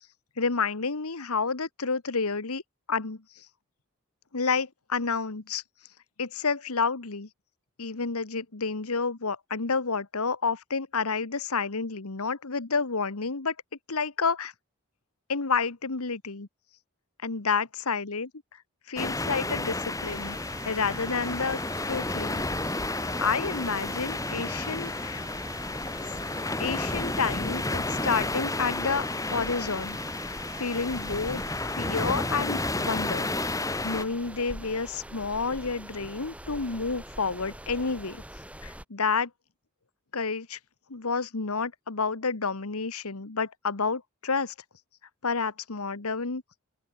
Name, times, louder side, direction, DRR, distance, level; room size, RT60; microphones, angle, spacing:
voice 1, 0.4-2.6 2.9-3.4 4.3-5.6 6.2-7.3 7.8-13.5 13.9-14.5 15.3-16.5 17.2-18.3 18.9-20.4 20.6-21.6 21.9-22.4 23.2-25.2 26.6-30.0 30.6-31.4 31.8-33.3 33.8-38.2 38.6-39.3 40.1-40.6 40.9-44.5 45.2-46.4, left 4 dB, 80° left, 1.4 m, -29 dB
sound 1, 19.0-34.0, left 2 dB, 15° left, 2.7 m, -31 dB
sound 2, 20.0-38.8, right 1 dB, 5° right, 5.4 m, -44 dB
open air
head